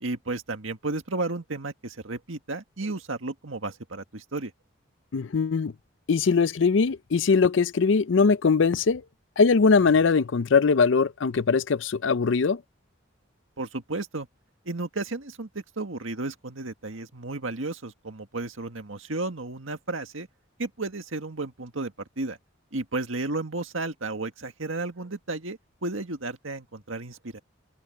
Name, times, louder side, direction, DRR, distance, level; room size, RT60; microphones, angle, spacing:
voice 1, 0.0-4.5 13.6-14.3 14.7-20.3 20.6-22.4 22.7-27.4, right 2 dB, 85° right, 1.8 m, -33 dB
voice 2, 5.1-5.7 6.1-9.0 9.4-12.6, left 5 dB, 70° left, 0.5 m, -21 dB
head